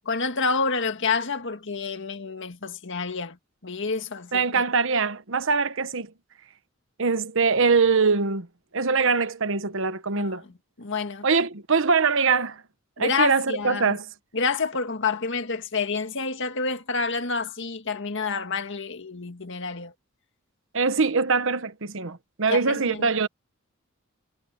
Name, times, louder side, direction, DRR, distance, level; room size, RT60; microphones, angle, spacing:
voice 1, 0.1-3.4 3.6-4.6 10.1-10.4 10.8-11.3 13.0-13.9 14.3-19.9 22.5-23.1, left 4 dB, 60° left, 1.9 m, -28 dB
voice 2, 4.3-6.1 7.0-8.5 8.7-10.4 11.2-12.6 13.0-14.1 20.7-23.3, right 4 dB, 65° right, 1.2 m, -23 dB
head